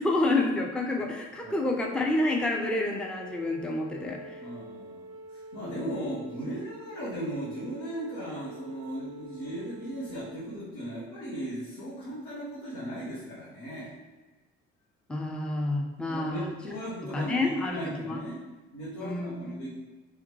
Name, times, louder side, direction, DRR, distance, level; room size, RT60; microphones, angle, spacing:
voice 1, 0.0-4.4 5.6-5.9 15.1-16.5 17.1-18.2 19.0-19.7, left 2 dB, 5° left, 1 dB, 0.5 m, -29 dB
Wind instrument woodwind instrument, 1.3-10.5, right 1 dB, 70° right, 0.5 m, -47 dB
voice 2, 4.4-13.9 16.1-18.4 18.7-19.7, right 1 dB, 80° left, -11 dB, 1.4 m, -37 dB
3.5 x 3.5 x 3.1 m, 1.2 s
hypercardioid pair, 55°, 32 cm